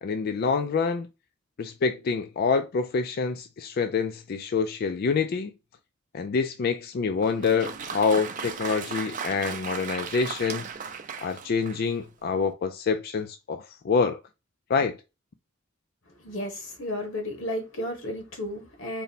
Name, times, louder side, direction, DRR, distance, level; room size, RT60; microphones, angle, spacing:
voice 1, 0.0-1.1 1.6-5.5 6.1-10.7 11.2-14.2 14.7-15.0, left 5 dB, 50° left, 0.3 m, -26 dB
Applause, 7.2-12.0, right 6 dB, 40° right, 0.5 m, -36 dB
voice 2, 16.2-19.0, left 1 dB, 90° left, 1.4 m, -33 dB
4.1 x 2.1 x 4.1 m
head